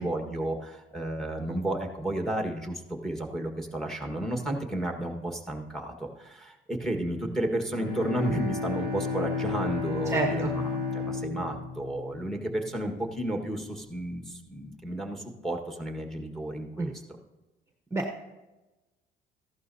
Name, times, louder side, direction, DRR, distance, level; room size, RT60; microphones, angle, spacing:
voice 1, 0.0-16.9, right 1 dB, 5° left, 3 dB, 1.6 m, -32 dB
Bowed string instrument, 7.7-12.8, left 4 dB, 70° left, 4.5 m, -33 dB
voice 2, 10.1-10.6 16.8-16.9 17.9-18.2, right 2 dB, 15° right, 3 dB, 1.0 m, -29 dB
14.5 x 11.5 x 2.8 m, 1.1 s
cardioid pair, 110°, 17 cm